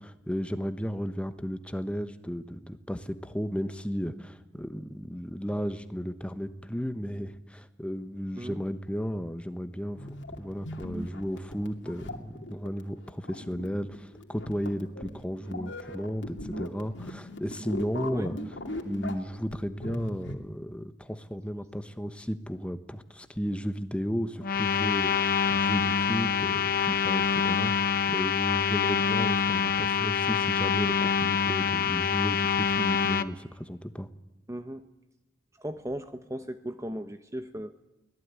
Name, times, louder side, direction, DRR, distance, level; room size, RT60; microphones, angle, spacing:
voice 1, 0.0-18.4 18.8-34.1, equal, 5° left, 10 dB, 1.1 m, -34 dB
sound 1, 9.9-20.4, left 1 dB, 75° left, 2.7 m, -39 dB
sound 2, 24.4-33.3, left 6 dB, 50° left, 0.9 m, -26 dB
voice 2, 34.5-34.9 35.6-37.7, right 1 dB, 15° right, 9 dB, 0.8 m, -36 dB
23.5 x 17.5 x 9.7 m, 1.0 s
head